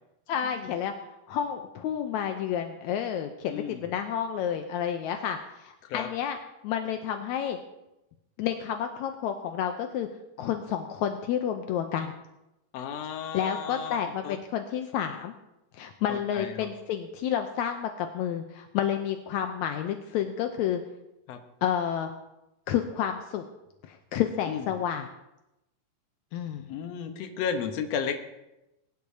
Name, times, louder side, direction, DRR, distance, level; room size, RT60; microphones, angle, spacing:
voice 1, 0.3-0.9 1.3-6.4 6.6-7.6 8.4-10.1 10.4-12.1 13.3-15.3 15.7-20.8 21.6-22.1 22.7-23.4 23.8-25.1 26.3-26.7, left 9 dB, 80° left, 6 dB, 1.7 m, -30 dB
voice 2, 3.5-3.8 5.9-6.1 12.7-14.0 14.2-14.4 16.1-16.7 21.3-21.4 24.5-24.6 26.7-28.1, left 7 dB, 65° left, 6 dB, 1.7 m, -33 dB
22.0 x 11.5 x 2.8 m, 0.92 s
omnidirectional pair, 4.0 m